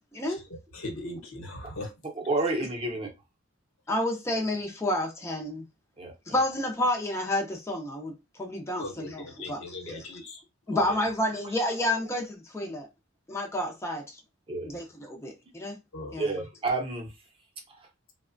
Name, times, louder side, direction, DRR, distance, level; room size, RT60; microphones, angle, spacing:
voice 1, 0.1-0.4 3.9-5.7 6.3-9.7 10.7-12.9 13.3-14.2 14.6-15.8 16.1-16.3, left 1 dB, 15° left, 0.5 m, -30 dB
voice 2, 0.7-1.9 8.8-10.4 10.7-10.8 15.9-16.1, left 2 dB, 75° left, 0.9 m, -39 dB
voice 3, 2.1-3.1 6.0-6.1 9.9-10.0 14.5-14.7 16.2-17.1, right 2 dB, 25° right, 0.6 m, -29 dB
3.1 x 2.1 x 2.5 m
head